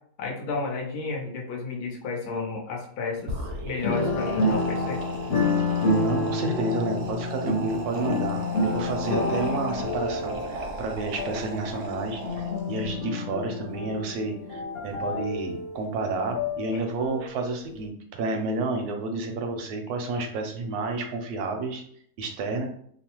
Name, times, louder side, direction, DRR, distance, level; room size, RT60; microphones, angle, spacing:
voice 1, 0.2-3.3 3.6-5.0 16.7-16.8, left 4 dB, 80° left, 0 dB, 1.2 m, -32 dB
sound 1, 3.2-12.9, right 2 dB, 65° right, 0.7 m, -37 dB
sound 2, 3.8-17.4 17.8-17.9, left 2 dB, 60° left, 0.6 m, -29 dB
voice 2, 6.0-21.8 22.2-22.7, right 3 dB, 80° right, 4 dB, 1.1 m, -30 dB
3.0 x 2.1 x 2.9 m, 0.63 s
omnidirectional pair, 1.6 m